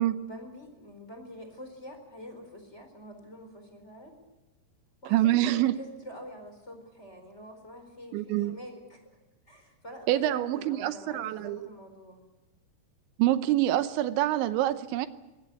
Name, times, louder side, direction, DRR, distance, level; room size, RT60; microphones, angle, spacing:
voice 1, 0.0-4.1 5.0-9.2 9.5-12.2, equal, 15° left, 5 dB, 4.3 m, -46 dB
voice 2, 5.1-5.7 8.1-8.6 10.1-11.6 13.2-15.1, right 14 dB, 85° right, 12 dB, 3.2 m, -26 dB
24.0 x 19.5 x 8.3 m, 1.1 s
omnidirectional pair, 5.3 m